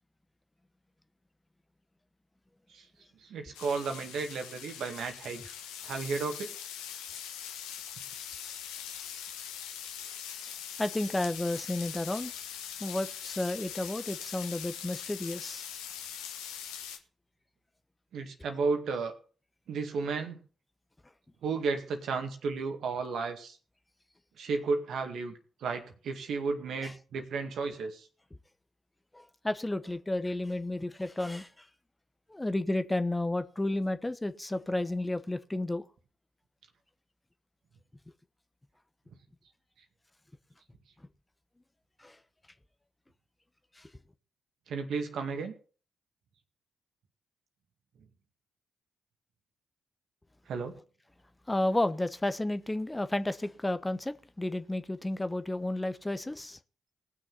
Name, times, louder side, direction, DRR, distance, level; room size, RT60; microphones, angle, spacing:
voice 1, 3.2-5.4 5.8-6.6 18.1-19.1 19.7-20.4 21.4-23.6 24.4-25.3 25.6-28.1 44.7-45.5 50.5-50.7, right 4 dB, 65° right, 2.0 m, -33 dB
sound 1, 3.5-17.0, left 9 dB, 80° left, 1.3 m, -42 dB
voice 2, 10.8-12.3 12.8-15.6 26.8-26.9 29.1-31.5 32.3-35.8 42.0-42.2 43.8-43.9 51.5-56.6, left 1 dB, 15° left, 1.0 m, -32 dB
19.0 x 6.4 x 5.7 m
hypercardioid pair, 40°, 0 cm